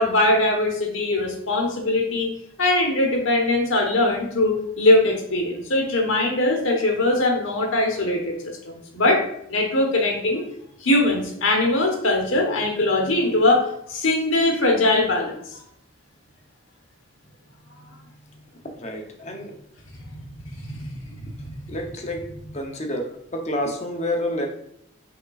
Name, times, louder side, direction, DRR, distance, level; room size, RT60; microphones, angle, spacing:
voice 1, 0.0-2.3 2.6-8.3 8.6-9.2 9.5-10.4 10.8-15.6 20.1-20.2 20.6-20.9 21.4-21.5, left 2 dB, 75° left, 1 dB, 1.1 m, -21 dB
voice 2, 18.8-19.5 21.7-22.2 22.5-23.0 23.3-24.5, left 1 dB, 35° left, 3 dB, 0.6 m, -28 dB
5.6 x 3.6 x 2.4 m, 0.73 s
head